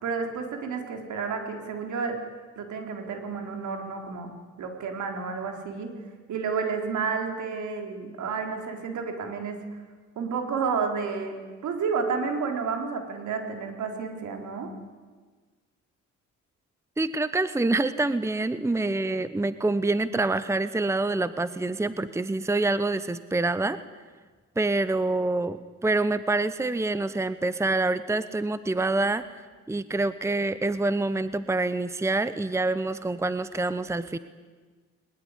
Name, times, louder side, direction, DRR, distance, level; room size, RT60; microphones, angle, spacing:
voice 1, 0.0-2.2 2.6-4.3 4.6-6.0 6.3-9.6 10.2-11.4 11.6-14.7, right 5 dB, 75° right, 4 dB, 4.2 m, -31 dB
voice 2, 17.0-23.8 24.6-29.2 29.7-34.2, right 2 dB, 10° right, 14 dB, 0.9 m, -26 dB
21.0 x 20.5 x 10.0 m, 1.4 s
cardioid pair, 90°, 30 cm